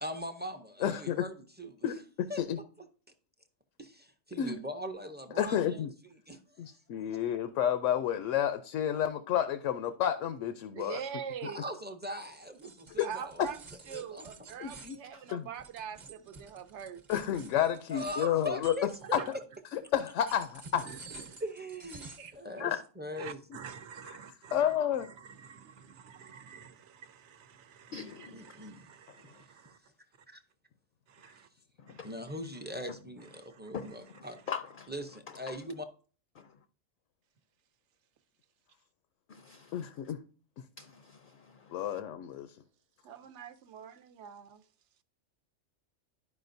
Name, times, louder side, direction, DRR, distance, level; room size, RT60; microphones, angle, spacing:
voice 1, 0.0-1.9 2.3-2.4 3.8-5.8 6.3-6.7 10.8-11.0 11.4-13.5 13.9-14.3 17.9-19.2 21.4-23.4 27.9-28.9 30.3-30.4 31.2-31.4 32.0-34.4 34.9-35.8, equal, 15° right, 0.4 m, -41 dB
voice 2, 0.8-1.2 1.8-2.0 2.4-2.6 4.4-4.6 5.4-5.9 6.6-11.0 13.0-13.1 14.6-15.0 15.3-15.5 17.1-18.7 19.1-19.2 19.7-20.9 22.6-22.8 24.5-25.1 39.7-40.2 41.7-42.6, left 10 dB, 90° left, 0.9 m, -30 dB
voice 3, 10.7-11.6 13.0-17.0 19.2-19.3 20.8-21.4 22.2-22.4 23.2-29.8 31.1-31.5 31.9-32.4 33.3-34.4 43.0-44.6, right 8 dB, 75° right, 1.0 m, -45 dB
sound 1, 12.1-19.6 20.0-22.4, right 3 dB, 40° right, 1.0 m, -51 dB
voice 4, 27.9-28.4 32.0-32.1 33.7-33.9 34.5-34.9 36.4-36.5 39.3-39.7 40.8-41.2 41.6-41.7, left 7 dB, 60° left, 0.6 m, -41 dB
12.0 x 5.0 x 2.6 m
omnidirectional pair, 1.2 m